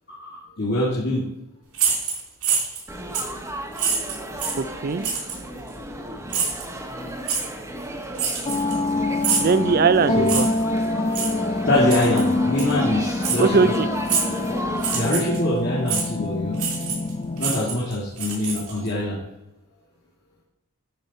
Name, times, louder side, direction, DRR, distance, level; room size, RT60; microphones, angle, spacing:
voice 1, 0.1-1.2 4.5-4.6 10.1-10.3 11.6-13.7 14.5-14.6 14.9-16.6 17.4-19.2, left 1 dB, 50° left, -6 dB, 2.3 m, -24 dB
sound 1, 1.7-2.8 3.1-3.4 3.8-4.6 5.0-5.4 6.3-6.6 7.3-7.4 8.2-8.9 9.2-9.5 10.3-10.6 11.1-11.3 11.9-12.2 12.6-12.7 13.2-13.4 14.1-14.4 14.8-15.4 15.9-16.1 16.6-17.1 17.4-18.9, right 6 dB, 85° right, 3.6 m, -25 dB
Laughter / Chatter / Crowd, 2.9-15.0, right 1 dB, 15° right, 1.0 m, -34 dB
voice 2, 4.6-5.0 9.4-10.5 13.4-13.9, right 4 dB, 45° right, 14 dB, 0.4 m, -20 dB
sound 2, 8.5-17.5, left 2 dB, 25° left, 0.6 m, -25 dB
12.5 x 5.4 x 4.2 m, 0.91 s
head